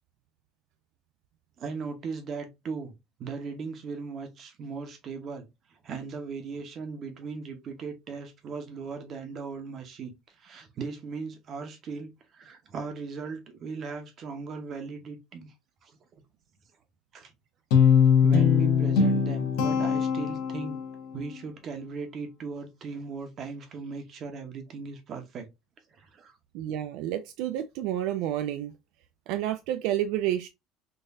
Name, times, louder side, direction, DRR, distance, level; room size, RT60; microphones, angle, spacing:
voice 1, 1.6-2.9 3.2-5.5 5.8-15.5 15.8-16.0 17.1-17.3 18.2-20.8 21.1-25.5 25.9-26.4, right 4 dB, 35° right, 0.8 m, -38 dB
Guitar, 17.7-21.0, left 7 dB, 85° left, 0.8 m, -22 dB
voice 2, 26.5-28.7 29.3-30.5, right 12 dB, 70° right, 0.3 m, -30 dB
3.8 x 2.5 x 2.5 m
cardioid pair, 155°, 0 cm